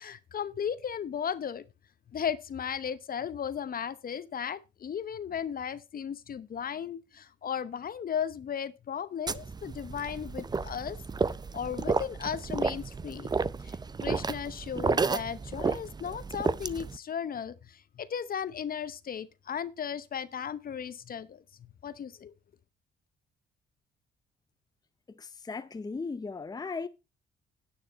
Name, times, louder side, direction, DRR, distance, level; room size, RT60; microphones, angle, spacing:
voice 1, 0.0-1.6 2.1-11.0 11.5-13.3 13.6-21.4 21.8-22.3, left 8 dB, 45° left, 0.9 m, -36 dB
sound 1, 9.3-17.0, right 4 dB, 20° right, 0.5 m, -32 dB
voice 2, 25.1-26.9, left 4 dB, 20° left, 0.7 m, -37 dB
10.0 x 9.3 x 4.1 m
cardioid pair, 90°, 20 cm